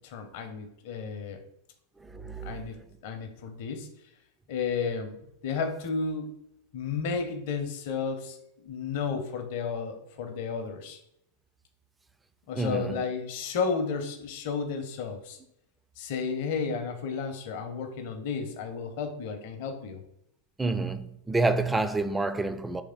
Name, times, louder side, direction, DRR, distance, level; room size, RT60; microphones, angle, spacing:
voice 1, 0.0-1.4 2.4-3.9 4.5-6.4 6.7-11.0 12.5-15.4 16.0-20.0, left 5 dB, 50° left, 0.6 m, -33 dB
voice 2, 2.0-2.6 12.6-13.0 20.6-22.8, right 3 dB, 10° right, 0.3 m, -28 dB
3.4 x 3.2 x 3.7 m
figure-of-eight pair, 90°, 0 cm